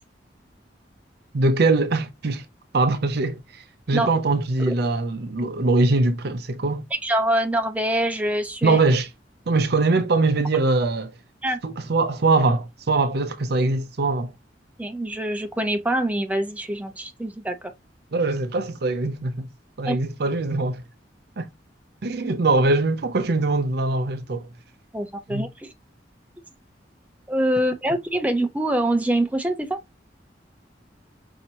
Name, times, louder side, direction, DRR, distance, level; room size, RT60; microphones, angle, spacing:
voice 1, 1.3-2.4 2.7-6.8 8.6-9.1 9.5-11.1 11.6-14.3 18.1-19.5 19.8-20.8 21.4-21.5 22.0-24.5 25.3-25.5, right 3 dB, 65° right, 0.6 m, -22 dB
voice 2, 7.0-8.8 11.4-11.6 14.8-17.6 19.8-20.0 24.9-25.7 27.3-29.8, right 1 dB, 10° right, 0.7 m, -24 dB
5.5 x 2.8 x 2.9 m
head